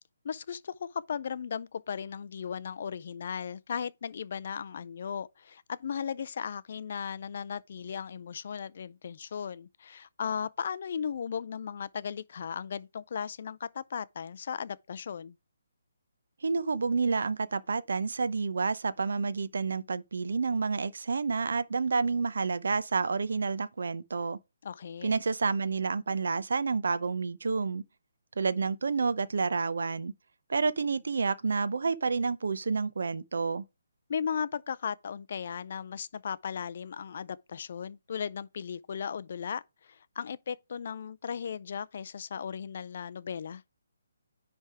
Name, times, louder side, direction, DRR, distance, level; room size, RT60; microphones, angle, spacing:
voice 1, 0.2-15.4 24.6-25.2 34.1-43.6, left 7 dB, 40° left, 0.4 m, -36 dB
voice 2, 16.4-24.4 25.0-27.8 28.4-30.1 30.5-33.6, right 4 dB, 65° right, 0.7 m, -29 dB
10.0 x 3.4 x 4.8 m
hypercardioid pair, 175°, 0 cm